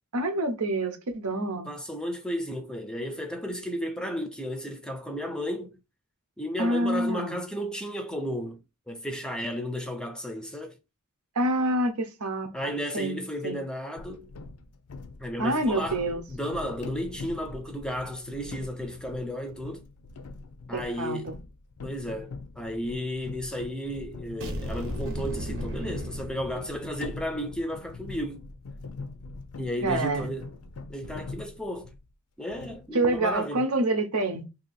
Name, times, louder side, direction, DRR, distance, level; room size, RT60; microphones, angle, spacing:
voice 1, 0.1-1.7 6.6-7.4 11.3-13.6 15.4-16.2 20.7-21.4 29.8-30.3 32.9-34.5, right 2 dB, 85° right, 0.8 m, -27 dB
voice 2, 1.7-5.7 6.4-10.7 12.5-14.3 15.2-16.0 16.3-19.8 20.7-21.3 21.8-28.5 29.6-30.5 30.9-31.9 32.4-33.7, equal, 5° left, 0.5 m, -33 dB
sound 1, 14.0-32.1 32.5-33.4, left 3 dB, 75° left, 0.5 m, -43 dB
sound 2, 24.4-27.2, equal, 60° right, 0.8 m, -35 dB
2.8 x 2.8 x 4.1 m
head